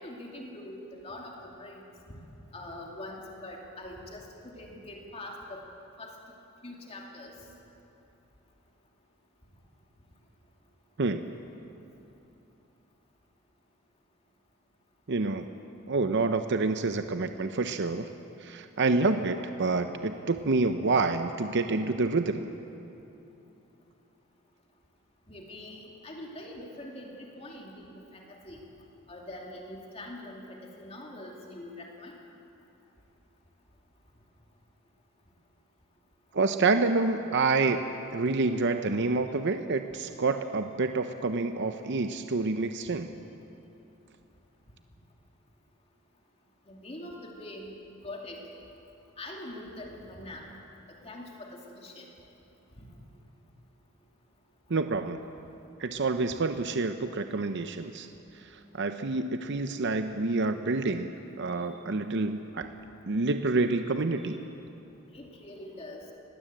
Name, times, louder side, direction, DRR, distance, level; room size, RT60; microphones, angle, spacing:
voice 1, 0.0-2.2 2.5-5.6 6.0-6.1 6.6-7.4 25.3-28.6 29.1-32.2 46.7-47.7 48.0-48.4 49.2-50.4 50.9-52.1 52.8-52.9 61.5-61.7 63.6-63.7 64.2-64.3 65.1-66.0, left 1 dB, 30° left, -1 dB, 2.6 m, -43 dB
voice 2, 15.1-15.5 15.9-18.1 18.4-22.5 36.3-37.8 38.1-43.1 54.7-55.2 55.8-58.1 58.5-61.1 61.4-62.7 63.1-64.4, right 3 dB, 55° right, 8 dB, 0.7 m, -28 dB
20.0 x 17.5 x 7.9 m, 2.9 s
head